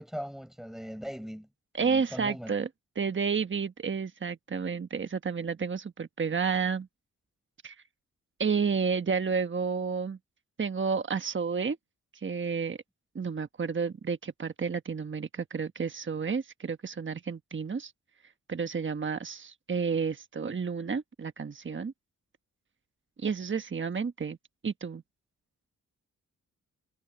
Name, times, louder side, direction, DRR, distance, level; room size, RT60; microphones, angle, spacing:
voice 1, 0.0-1.5 1.8-2.5, equal, ahead, 4.9 m, -39 dB
voice 2, 1.7-2.7 3.0-6.9 7.6-7.7 8.4-10.2 10.6-11.8 12.2-12.8 13.1-17.9 18.5-21.9 23.2-24.4 24.6-25.0, right 5 dB, 35° right, 1.3 m, -31 dB
cardioid pair, 65°, 32 cm